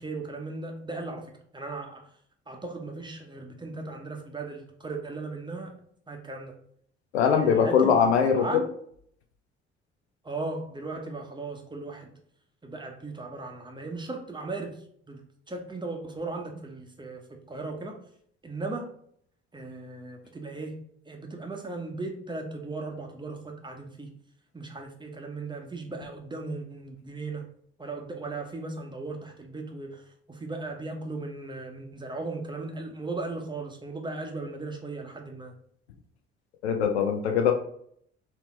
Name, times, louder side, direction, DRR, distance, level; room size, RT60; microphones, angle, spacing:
voice 1, 0.0-2.1 2.5-5.7 6.1-6.5 7.3-8.0 8.3-8.7 10.2-12.1 12.6-14.8 15.1-15.2 15.5-17.2 17.5-18.0 18.4-18.9 19.5-20.7 21.1-24.1 24.5-27.4 27.8-30.0 30.3-35.5, right 3 dB, 15° right, 2 dB, 0.9 m, -37 dB
voice 2, 7.1-8.5 36.6-37.5, left 7 dB, 75° left, 6 dB, 0.5 m, -22 dB
4.1 x 3.0 x 3.0 m, 0.65 s
figure-of-eight pair, 50°, 33 cm